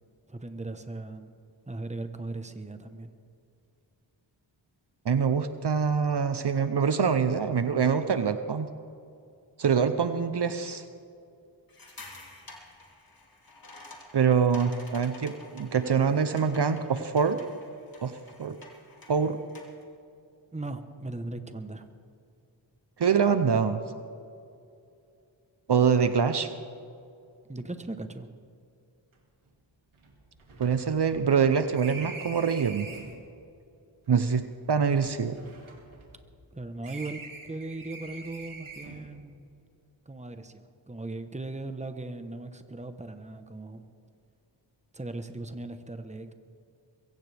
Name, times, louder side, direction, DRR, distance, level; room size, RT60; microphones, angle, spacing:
voice 1, 0.3-1.3 1.7-3.1 20.5-21.9 27.5-28.3 36.5-39.5 40.1-43.8 44.9-46.3, right 2 dB, 15° right, 8 dB, 1.1 m, -38 dB
voice 2, 5.0-8.7 9.6-10.8 14.1-17.4 18.0-18.1 18.4-18.6 19.1-19.4 23.0-23.8 25.7-26.5 30.6-32.9 34.1-35.4, right 6 dB, 55° right, 10 dB, 0.8 m, -25 dB
sound 1, 11.7-19.8, left 2 dB, 45° left, 2.7 m, -50 dB
sound 2, 29.1-29.2 29.5-29.6 29.9-33.2 34.1-36.5 36.8-39.1, right 3 dB, 85° right, 2.5 m, -45 dB
22.0 x 16.5 x 3.5 m, 2.5 s
wide cardioid pair, 65°, 47 cm